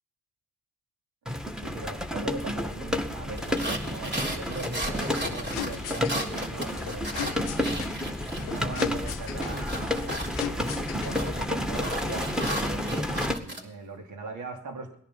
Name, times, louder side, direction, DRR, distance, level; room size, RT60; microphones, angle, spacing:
sound 1, 1.3-13.4, left 1 dB, ahead, 2.0 m, -31 dB
voice 1, 1.6-7.6 8.4-15.0, right 3 dB, 80° right, 3 dB, 2.6 m, -40 dB
sound 2, 3.4-8.7 8.9-13.6, right 1 dB, 35° right, 3.8 m, -36 dB
sound 3, 4.9-11.4, left 14 dB, 90° left, 0.6 m, -39 dB
18.0 x 11.0 x 5.8 m, 0.70 s
hypercardioid pair, 40°, 30 cm